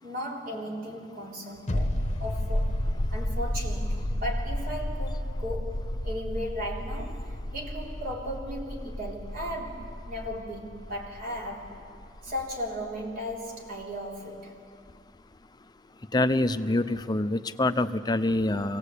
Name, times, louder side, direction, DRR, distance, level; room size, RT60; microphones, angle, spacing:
voice 1, 0.0-2.9 3.1-11.8 12.2-14.6, equal, 55° right, -1 dB, 3.5 m, -36 dB
sound 1, 1.7-13.0 13.3-13.4, left 1 dB, 40° left, 1.0 m, -32 dB
voice 2, 16.1-18.8, left 2 dB, 25° left, 10 dB, 0.6 m, -25 dB
24.0 x 17.5 x 8.3 m, 2.3 s
head